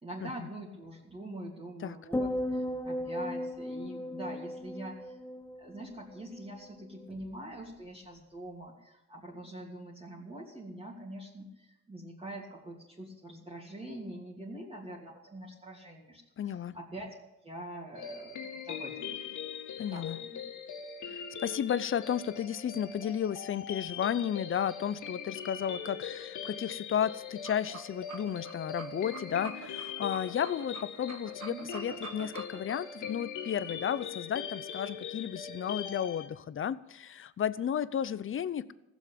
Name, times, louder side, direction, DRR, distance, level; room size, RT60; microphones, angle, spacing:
voice 1, 0.0-5.2 5.6-17.2 17.4-18.4 18.6-19.3 19.9-20.4 31.5-31.6, right 1 dB, 20° right, -4 dB, 2.9 m, -44 dB
sound 1, 2.1-6.5 6.8-7.2, left 1 dB, 5° left, 0.7 m, -36 dB
voice 2, 16.4-16.8 19.8-20.2 21.1-38.7, left 9 dB, 45° left, 17 dB, 0.7 m, -33 dB
sound 2, 17.9-36.3, left 7 dB, 80° left, 2.0 m, -41 dB
sound 3, 27.3-32.8, right 5 dB, 55° right, 1.7 m, -46 dB
15.5 x 7.2 x 9.1 m, 0.96 s
cardioid pair, 90°, 30 cm